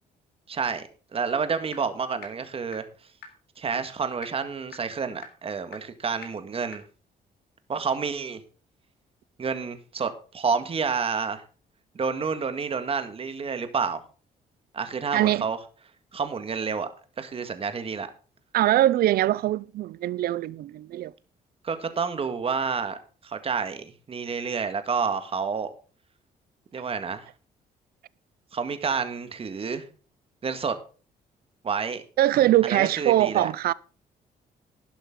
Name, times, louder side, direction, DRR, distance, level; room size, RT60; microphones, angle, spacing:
voice 1, 0.5-2.9 3.6-6.8 7.7-8.4 9.4-11.4 12.0-14.0 14.7-15.6 16.1-16.9 17.2-18.1 21.6-25.7 26.7-27.3 28.5-29.8 30.4-30.8 31.6-32.0 32.6-33.5, right 5 dB, 35° right, 1.8 m, -29 dB
sound 1, 1.7-1.8 2.2-2.3 2.7-2.8 3.2-3.3 3.7-3.8 4.2-4.3 4.7-4.8 5.2-5.3 5.7-5.8 6.2-6.3 6.7-6.8, left 6 dB, 90° left, 3.4 m, -41 dB
voice 2, 15.1-15.4 18.5-21.1 32.2-33.7, right 14 dB, 70° right, 0.5 m, -22 dB
11.5 x 11.5 x 3.8 m
cardioid pair, 115°, 16 cm